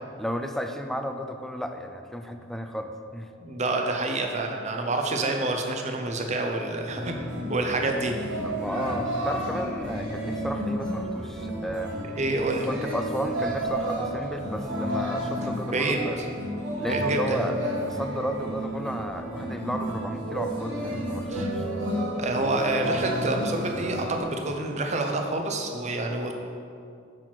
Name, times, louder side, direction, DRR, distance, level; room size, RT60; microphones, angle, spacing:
voice 1, 0.2-3.3 8.4-12.0 12.7-16.2 16.8-21.6, equal, ahead, 6 dB, 0.3 m, -33 dB
voice 2, 3.4-7.2 7.5-8.1 12.1-12.7 15.7-16.2 16.9-17.4 21.3-21.5 22.2-26.4, right 2 dB, 35° right, 3 dB, 0.7 m, -28 dB
sound 1, 6.9-24.2, right 1 dB, 60° right, 1.4 m, -31 dB
6.2 x 5.9 x 4.4 m, 2.4 s
head